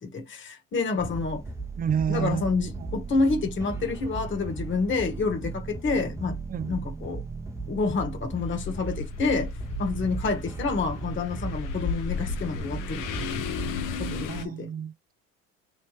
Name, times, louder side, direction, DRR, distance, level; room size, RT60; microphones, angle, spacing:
voice 1, 0.0-1.4 2.1-6.4 6.7-7.2 7.7-9.5 9.8-13.5 14.0-14.7, left 4 dB, 30° left, 1.4 m, -28 dB
sound 1, 1.0-14.3, right 3 dB, 5° right, 0.8 m, -36 dB
voice 2, 1.8-2.5 6.5-6.7 14.3-15.1, right 8 dB, 25° right, 0.4 m, -29 dB
sound 2, 8.4-14.4, left 7 dB, 55° left, 0.9 m, -35 dB
3.3 x 3.0 x 3.1 m
hypercardioid pair, 75°, 38 cm